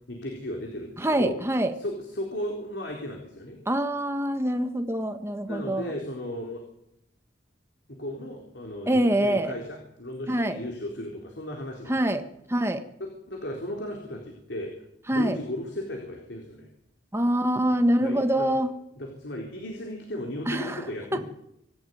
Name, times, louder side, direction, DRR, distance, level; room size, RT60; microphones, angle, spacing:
voice 1, 0.0-1.4 1.8-3.6 5.5-6.6 7.9-12.0 13.0-14.7 15.1-16.7 18.0-18.5 18.9-21.2, left 1 dB, 70° left, 1 dB, 4.2 m, -35 dB
voice 2, 1.0-1.7 3.7-5.9 8.9-9.5 10.3-10.6 11.9-12.8 15.1-15.4 17.1-18.7 20.5-20.8, right 1 dB, 15° right, 7 dB, 1.5 m, -25 dB
26.0 x 12.5 x 9.4 m, 0.80 s
head